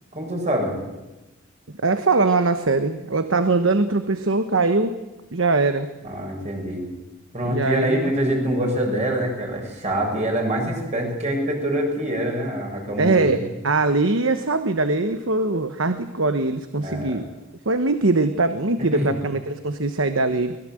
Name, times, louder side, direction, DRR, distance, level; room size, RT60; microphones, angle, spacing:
voice 1, 0.1-0.7 6.0-6.9 7.3-13.4 16.8-17.2 18.9-19.1, right 1 dB, 35° right, 1 dB, 7.2 m, -25 dB
voice 2, 1.8-5.0 5.3-5.9 7.5-8.1 13.0-17.3 17.6-20.6, right 3 dB, 70° right, 9 dB, 1.2 m, -21 dB
24.0 x 20.5 x 7.8 m, 1.0 s
head